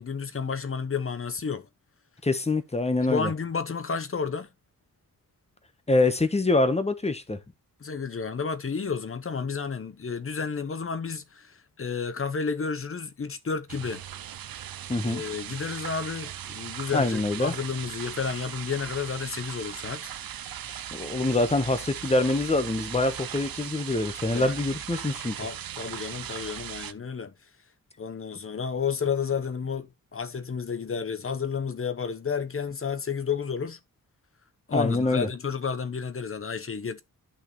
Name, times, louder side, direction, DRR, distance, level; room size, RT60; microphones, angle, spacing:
voice 1, 0.0-1.7 3.1-4.5 7.8-14.0 15.0-20.1 24.3-24.6 25.4-27.3 28.0-33.8 34.7-37.0, left 5 dB, 35° left, 0.9 m, -31 dB
voice 2, 2.2-3.3 5.9-7.4 14.9-15.2 16.9-17.5 20.9-25.4 34.7-35.3, left 2 dB, 20° left, 1.1 m, -25 dB
sound 1, 13.7-26.9, right 10 dB, 75° right, 0.7 m, -38 dB
11.0 x 5.7 x 3.1 m
wide cardioid pair, 125°, 36 cm